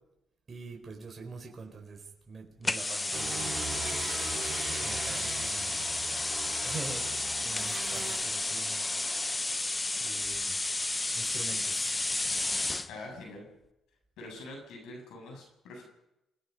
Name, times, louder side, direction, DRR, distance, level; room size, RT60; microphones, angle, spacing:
voice 1, 0.5-3.6 4.8-7.1 7.4-8.8 9.2-9.6 10.0-10.7 11.1-11.9, right 4 dB, 35° right, 1 dB, 4.6 m, -45 dB
sound 1, 2.6-12.9, left 2 dB, 20° left, 1.0 m, -32 dB
sound 2, 3.1-8.2, right 6 dB, 55° right, 7.4 m, -40 dB
voice 2, 12.9-13.5 14.2-15.8, left 2 dB, 85° left, 1 dB, 7.9 m, -44 dB
28.0 x 19.0 x 5.5 m, 0.90 s
cardioid pair, 90°, 0 cm